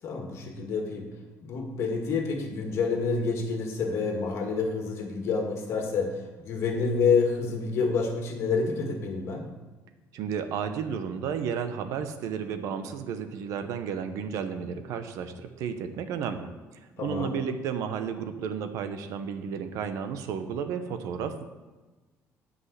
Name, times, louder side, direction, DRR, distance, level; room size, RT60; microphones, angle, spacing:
voice 1, 0.0-1.1 1.4-6.1 6.4-9.4 17.0-17.3, left 5 dB, 55° left, 2 dB, 1.9 m, -28 dB
voice 2, 10.1-16.5 17.0-21.4, right 7 dB, 75° right, 8 dB, 1.0 m, -32 dB
9.8 x 5.4 x 8.1 m, 1.2 s
cardioid pair, 150°, 6 cm